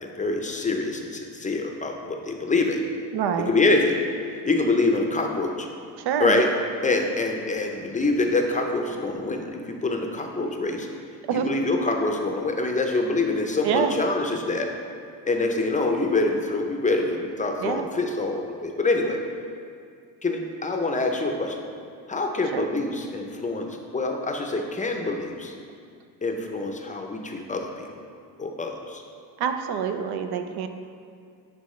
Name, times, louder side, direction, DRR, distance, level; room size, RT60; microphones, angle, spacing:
voice 1, 0.0-2.8 3.5-4.0 4.4-5.7 6.2-6.5 6.8-10.9 11.3-14.7 15.3-19.2 20.2-21.6 22.1-23.7 23.9-25.5 26.2-27.9 28.4-29.0, left 2 dB, 20° left, 3 dB, 0.6 m, -25 dB
voice 2, 3.1-3.6 6.0-6.4 11.3-11.6 13.6-14.0 17.6-17.9 22.5-22.7 29.4-30.7, right 7 dB, 75° right, 7 dB, 0.7 m, -26 dB
10.0 x 4.7 x 3.2 m, 2.3 s
cardioid pair, 120°, 39 cm